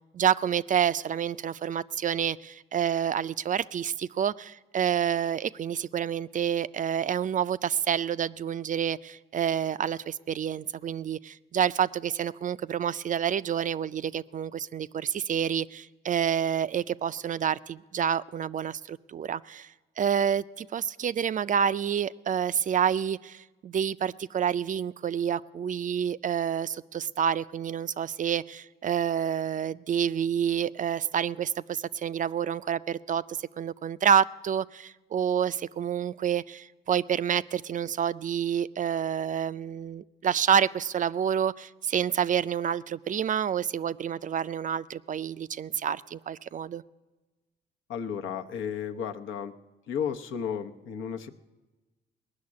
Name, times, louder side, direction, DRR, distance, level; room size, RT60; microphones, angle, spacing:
voice 1, 0.1-46.8, right 8 dB, 40° right, 16 dB, 0.4 m, -28 dB
voice 2, 47.9-49.5 49.9-51.3, left 7 dB, 75° left, 5 dB, 0.9 m, -33 dB
19.0 x 6.5 x 9.6 m, 1.2 s
cardioid pair, 90°, 20 cm